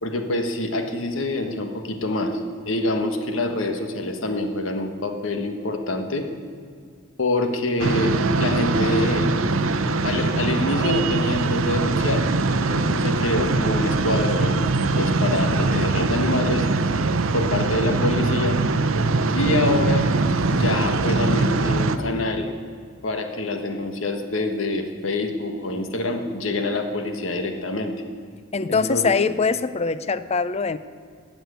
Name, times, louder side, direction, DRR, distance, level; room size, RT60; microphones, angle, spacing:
voice 1, 0.0-6.3 7.2-9.3 10.0-14.7 15.0-16.7 17.3-18.6 19.3-20.1 20.5-22.5 23.0-27.9 28.7-29.0, left 2 dB, 80° left, 6 dB, 1.4 m, -26 dB
sound 1, 7.8-22.0, right 3 dB, 90° right, 0.7 m, -22 dB
voice 2, 28.5-30.8, left 4 dB, 30° left, 14 dB, 0.5 m, -23 dB
17.0 x 6.1 x 8.2 m, 2.1 s
head